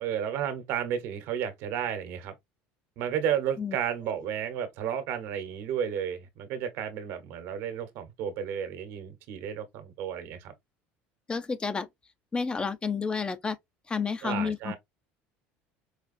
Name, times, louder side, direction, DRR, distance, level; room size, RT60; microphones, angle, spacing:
voice 1, 0.0-2.3 3.0-10.5 14.2-14.8, right 9 dB, 65° right, 1.1 m, -32 dB
voice 2, 11.3-11.9 12.3-13.6 13.9-14.7, left 5 dB, 20° left, 0.5 m, -30 dB
4.8 x 2.4 x 2.5 m
supercardioid pair, 120°, 5 cm